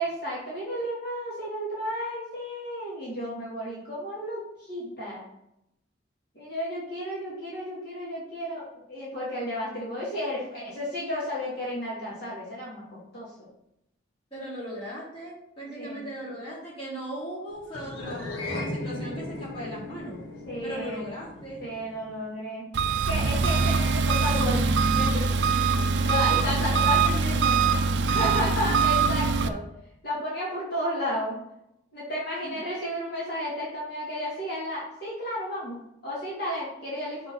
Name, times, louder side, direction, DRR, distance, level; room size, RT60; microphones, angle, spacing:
voice 1, 0.0-4.4 4.7-5.2 6.4-13.5 15.8-16.0 20.5-21.0 21.6-22.7 23.0-25.3 26.0-27.0 28.1-29.6 30.0-31.4 31.9-37.3, equal, 50° left, -7 dB, 2.3 m, -32 dB
voice 2, 14.3-20.2 20.6-21.6 26.1-27.9 32.4-32.6, equal, 30° left, -7 dB, 3.0 m, -38 dB
sound 1, 17.7-22.3, left 1 dB, 80° left, 1.6 m, -37 dB
Engine, 22.7-29.5, right 5 dB, 65° right, 0.4 m, -23 dB
6.1 x 5.1 x 5.5 m, 0.81 s
head